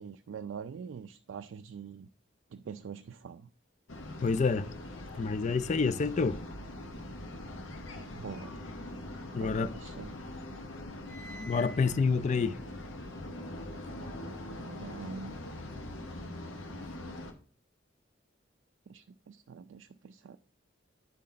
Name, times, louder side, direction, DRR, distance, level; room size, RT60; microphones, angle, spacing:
voice 1, 0.0-2.1 2.5-3.5 8.1-8.6 9.4-10.4 13.7-13.8 14.6-15.4 18.9-20.4, right 6 dB, 75° right, 0.3 m, -44 dB
sound 1, 3.9-17.3, left 1 dB, 85° left, 1.0 m, -42 dB
voice 2, 4.2-6.4 9.3-9.7 11.3-12.6, left 4 dB, 40° left, 0.4 m, -28 dB
sound 2, 9.2-10.1 10.4-13.8, right 1 dB, 35° right, 0.8 m, -52 dB
9.3 x 4.2 x 3.9 m
head